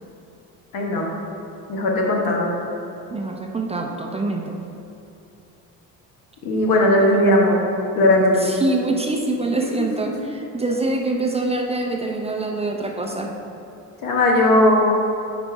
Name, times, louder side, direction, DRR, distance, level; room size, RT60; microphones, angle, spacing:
voice 1, 0.7-1.1 1.7-2.5 6.4-7.6 7.9-8.5 9.6-9.9 10.2-10.3 14.0-14.9, left 1 dB, 70° left, -1 dB, 1.2 m, -18 dB
voice 2, 3.1-4.6 7.0-7.6 8.4-13.4, right 2 dB, 20° right, 2 dB, 0.4 m, -25 dB
5.2 x 4.0 x 4.8 m, 2.7 s
cardioid pair, 90°, 35 cm